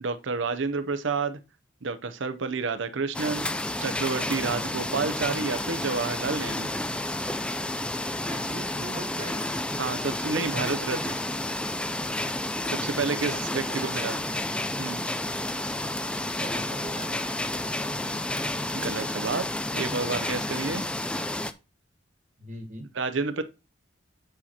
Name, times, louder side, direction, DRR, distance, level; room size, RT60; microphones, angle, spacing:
voice 1, 0.0-1.4 1.8-3.5 3.8-6.7 9.8-11.2 12.6-14.1 14.8-15.0 18.7-19.5 19.7-20.8 22.9-23.4, right 4 dB, 75° right, 0.7 m, -29 dB
sound 1, 3.1-21.5, left 1 dB, 5° left, 0.3 m, -31 dB
voice 2, 8.3-9.5 13.2-14.1 16.3-17.7 22.4-22.9, right 1 dB, 40° right, 1.5 m, -41 dB
8.8 x 5.6 x 2.9 m
head